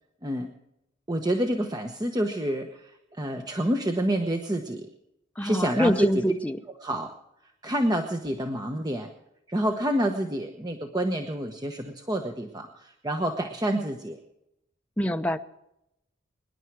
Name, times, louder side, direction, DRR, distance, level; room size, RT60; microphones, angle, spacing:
voice 1, 1.1-4.9 5.4-6.2 6.8-7.1 7.6-9.1 9.5-14.2, right 1 dB, 20° right, 5 dB, 1.1 m, -28 dB
voice 2, 5.4-6.6 15.0-15.4, equal, 5° left, 6 dB, 0.8 m, -25 dB
25.0 x 11.0 x 4.8 m, 0.84 s
head